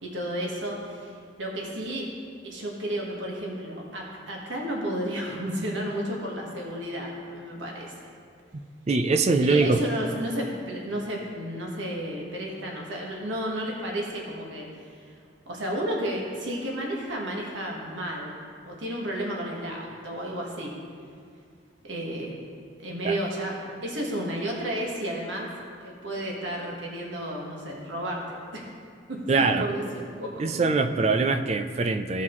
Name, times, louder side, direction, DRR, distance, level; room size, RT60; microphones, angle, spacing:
voice 1, 0.0-2.1 2.4-8.1 9.4-15.2 15.5-18.4 18.6-20.7 21.8-22.4 22.8-25.5 25.8-28.6 29.1-30.9, right 1 dB, 90° right, -2 dB, 1.4 m, -32 dB
voice 2, 8.9-9.8 23.0-23.2 29.3-29.7 30.4-32.2, right 3 dB, 35° right, 9 dB, 0.4 m, -23 dB
15.5 x 5.6 x 3.1 m, 2.2 s
head